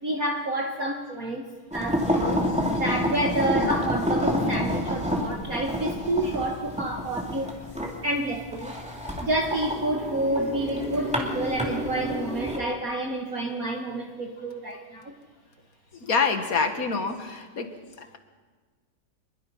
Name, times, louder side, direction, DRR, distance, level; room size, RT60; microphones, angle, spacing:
voice 1, 0.0-1.4 1.7-7.5 8.0-8.7 9.2-15.1, right 1 dB, 45° right, 2 dB, 1.7 m, -29 dB
sound 1, 1.7-12.6, equal, 5° right, 2.5 m, -28 dB
voice 2, 2.2-2.6 16.0-17.7 18.0-18.2, left 4 dB, 45° left, 7 dB, 2.0 m, -27 dB
26.0 x 21.5 x 5.6 m, 1.4 s
omnidirectional pair, 2.3 m